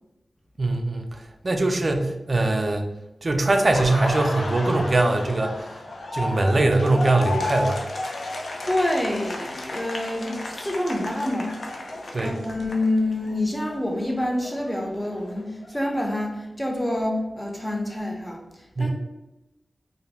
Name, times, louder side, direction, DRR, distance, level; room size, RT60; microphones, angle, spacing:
voice 1, 0.6-1.2 1.4-2.9 3.2-5.7 6.1-7.8 12.1-12.3 18.8-18.9, right 2 dB, 45° right, 4 dB, 0.4 m, -22 dB
Laughter, 3.5-13.4 13.7-15.7, left 2 dB, 75° left, 0.4 m, -33 dB
voice 2, 8.7-11.6 12.2-18.9, left 1 dB, 15° left, 1 dB, 0.5 m, -27 dB
2.5 x 2.1 x 3.2 m, 0.97 s
wide cardioid pair, 85°, 0 cm